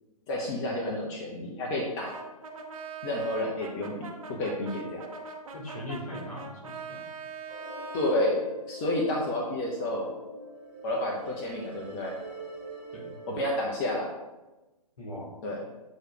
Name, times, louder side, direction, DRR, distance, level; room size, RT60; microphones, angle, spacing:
voice 1, 0.3-2.1 3.0-3.9 4.3-5.0 7.9-8.4 8.7-10.1 10.8-12.2 13.3-14.1 15.4-15.6, left 1 dB, 30° left, -1 dB, 1.0 m, -30 dB
Brass instrument, 2.0-8.2, right 4 dB, 60° right, 1.2 m, -42 dB
voice 2, 5.5-7.0 12.9-13.1 15.0-15.4, left 1 dB, 65° left, -1 dB, 2.2 m, -39 dB
sound 1, 7.5-13.9, right 2 dB, ahead, 2.1 m, -44 dB
7.8 x 3.3 x 4.8 m, 1.1 s
figure-of-eight pair, 130°, 19 cm